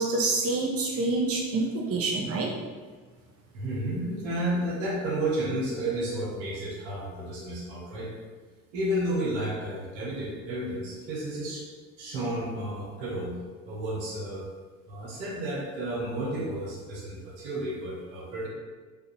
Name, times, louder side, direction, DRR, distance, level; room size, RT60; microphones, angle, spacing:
voice 1, 0.0-2.5, right 3 dB, 35° right, -1 dB, 0.7 m, -27 dB
voice 2, 3.5-8.1 8.7-11.6 12.0-13.4 13.6-14.5 14.9-18.5, right 1 dB, 75° right, -3 dB, 1.2 m, -32 dB
4.7 x 2.7 x 3.1 m, 1.4 s
hypercardioid pair, 55°, 39 cm